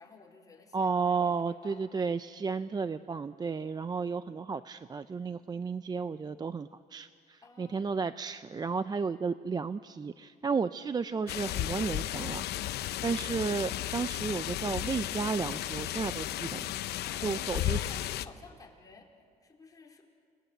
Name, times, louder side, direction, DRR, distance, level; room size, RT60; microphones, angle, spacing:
voice 1, 0.0-1.9 7.4-8.0 17.0-20.0, left 4 dB, 20° left, -1 dB, 4.5 m, -53 dB
voice 2, 0.7-12.7 13.0-16.7 17.2-17.8, right 5 dB, 25° right, 13 dB, 0.5 m, -33 dB
sound 1, 11.3-18.3, left 13 dB, 75° left, 0.8 m, -34 dB
29.5 x 20.0 x 8.1 m, 2.2 s
cardioid pair, 110°, 17 cm